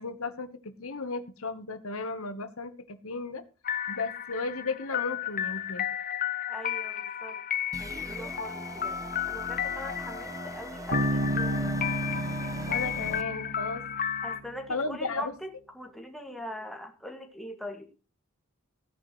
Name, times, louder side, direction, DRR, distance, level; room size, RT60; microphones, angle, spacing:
voice 1, 0.0-3.4 3.9-5.8 12.7-13.8 14.7-15.3, left 3 dB, 70° left, 11 dB, 1.2 m, -34 dB
sound 1, 3.6-14.4, left 9 dB, 40° left, 0.8 m, -33 dB
voice 2, 6.5-7.4 7.8-9.0 9.3-11.8 14.2-17.9, equal, ahead, 3 dB, 2.0 m, -42 dB
sound 2, 7.7-13.2, right 2 dB, 15° right, 0.8 m, -41 dB
Bass guitar, 10.9-14.6, right 1 dB, 70° right, 0.9 m, -32 dB
15.5 x 10.5 x 3.2 m, 0.32 s
head